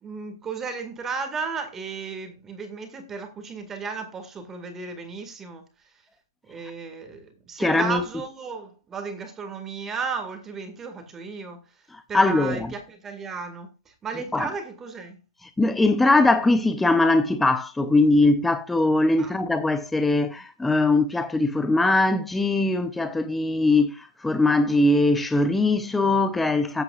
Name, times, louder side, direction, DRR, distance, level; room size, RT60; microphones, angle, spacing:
voice 1, 0.0-5.7 6.5-11.6 12.1-15.2 19.2-19.3, right 5 dB, 10° right, 2.0 m, -34 dB
voice 2, 7.6-8.0 12.1-12.7 14.3-14.5 15.6-26.8, left 2 dB, 5° left, 0.6 m, -21 dB
13.5 x 9.0 x 2.5 m
hypercardioid pair, 160°, 3 cm